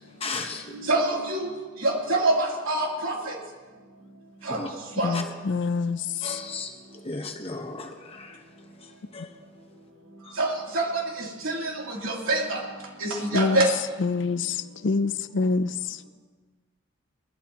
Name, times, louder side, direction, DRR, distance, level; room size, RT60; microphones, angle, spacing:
voice 1, 0.2-0.8 4.5-4.7 5.1-5.2 6.2-6.7 7.0-8.4 9.1-9.3 10.2-10.4, left 3 dB, 30° left, 3 dB, 1.2 m, -35 dB
voice 2, 0.7-1.5 1.8-3.1 4.5-4.6 5.0-5.1 10.4-10.5 10.7-10.9 11.4-11.6 12.0-12.6 13.0-13.7, right 2 dB, 90° right, -3 dB, 3.2 m, -24 dB
voice 3, 5.0-6.0 13.3-13.6 14.0-14.5 14.8-15.7, left 4 dB, 60° left, 14 dB, 0.5 m, -25 dB
20.5 x 12.5 x 3.0 m, 1.4 s
head